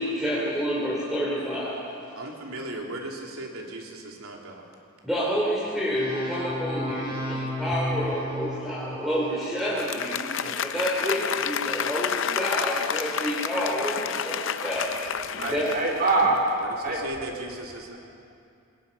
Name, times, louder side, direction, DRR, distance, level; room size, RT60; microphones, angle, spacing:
voice 1, 0.0-1.8 5.0-14.9 15.3-15.7, equal, ahead, -8 dB, 4.0 m, -29 dB
voice 2, 2.1-4.6 15.3-15.6 16.6-18.0, right 1 dB, 85° right, 0 dB, 3.3 m, -37 dB
sound 1, 5.9-9.5, equal, 20° right, 6.8 m, -33 dB
Applause, 9.6-16.6, left 7 dB, 60° left, 0.6 m, -30 dB
voice 3, 15.4-16.4 16.8-17.0, right 3 dB, 40° right, 0 dB, 3.2 m, -23 dB
27.0 x 21.0 x 5.6 m, 2.4 s
head